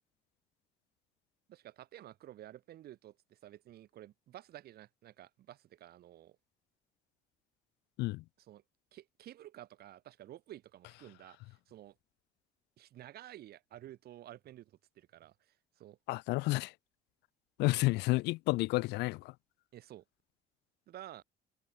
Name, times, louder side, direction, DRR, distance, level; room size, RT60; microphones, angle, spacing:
voice 1, 1.5-6.4 8.4-8.6 8.9-12.0 12.8-16.0 19.7-20.0 20.9-21.2, right 13 dB, 65° right, 6.3 m, -52 dB
voice 2, 16.1-16.7 17.6-19.2, left 21 dB, 90° left, 0.9 m, -30 dB
cardioid pair, 110°, 17 cm